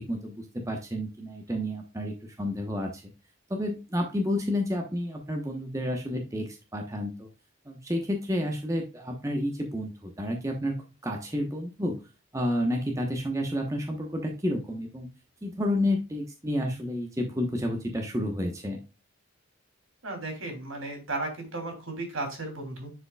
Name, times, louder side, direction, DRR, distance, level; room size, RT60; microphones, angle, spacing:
voice 1, 0.0-3.0 3.5-7.3 7.7-12.0 12.3-15.1 15.4-18.8, left 1 dB, 15° right, 1 dB, 1.0 m, -30 dB
voice 2, 20.0-22.9, right 2 dB, 70° right, 3 dB, 2.9 m, -35 dB
10.0 x 5.1 x 2.3 m, 0.30 s
head